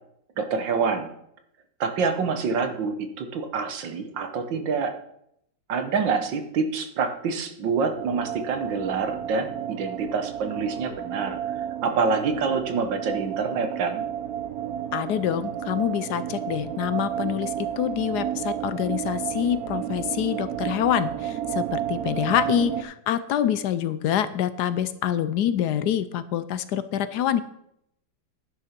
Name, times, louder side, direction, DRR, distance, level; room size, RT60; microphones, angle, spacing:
voice 1, 0.4-1.1 1.8-4.9 5.7-11.4 11.8-14.0, right 5 dB, 80° right, 7 dB, 1.8 m, -26 dB
sound 1, 8.0-22.8, right 10 dB, 60° right, 1.0 m, -32 dB
voice 2, 14.9-27.4, left 10 dB, 70° left, 13 dB, 1.0 m, -26 dB
11.0 x 6.6 x 5.9 m, 0.75 s
omnidirectional pair, 2.0 m